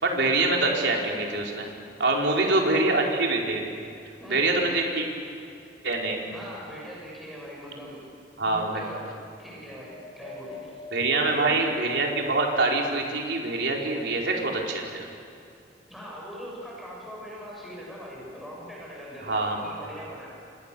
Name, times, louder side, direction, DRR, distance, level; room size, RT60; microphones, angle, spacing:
voice 1, 0.0-1.7 2.0-3.6 4.3-5.1 5.8-6.2 8.4-8.8 10.9-15.0 19.2-19.6, right 2 dB, 80° right, -1 dB, 4.5 m, -25 dB
voice 2, 2.0-3.2 4.2-4.6 6.3-8.0 8.4-9.1 9.4-10.7 11.1-11.6 15.9-20.3, equal, ahead, -5 dB, 7.6 m, -41 dB
Wind, 9.6-13.2 13.8-14.8 15.6-15.7, left 3 dB, 35° left, 6.9 m, -46 dB
29.0 x 26.0 x 7.0 m, 2.5 s
head